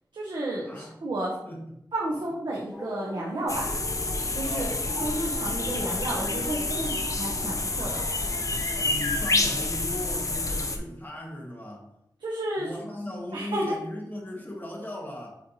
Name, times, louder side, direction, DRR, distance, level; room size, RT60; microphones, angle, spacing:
voice 1, 0.1-1.4 1.9-3.7 4.3-4.7 5.0-8.0 12.2-12.7 13.3-13.7, right 1 dB, 80° right, -4 dB, 1.1 m, -31 dB
sound 1, 2.7-10.4, equal, 5° right, 1.6 m, -42 dB
sound 2, 3.5-10.8, left 2 dB, 45° left, 0.7 m, -28 dB
voice 2, 4.4-4.8 8.8-11.9 12.6-15.4, left 1 dB, 25° left, -1 dB, 1.6 m, -37 dB
7.1 x 4.3 x 3.1 m, 0.80 s
wide cardioid pair, 85°, 8 cm